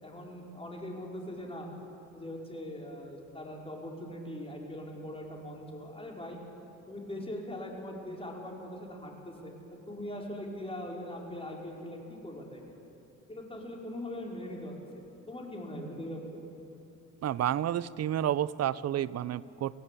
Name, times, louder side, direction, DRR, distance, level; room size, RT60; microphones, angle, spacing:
voice 1, 0.0-1.7 2.1-6.4 6.9-12.7 13.3-14.7 15.3-16.4, left 1 dB, 20° left, -1 dB, 4.6 m, -41 dB
voice 2, 17.2-19.8, right 11 dB, 55° right, 18 dB, 0.7 m, -30 dB
25.5 x 16.0 x 8.3 m, 2.8 s
cardioid pair, 90°, 30 cm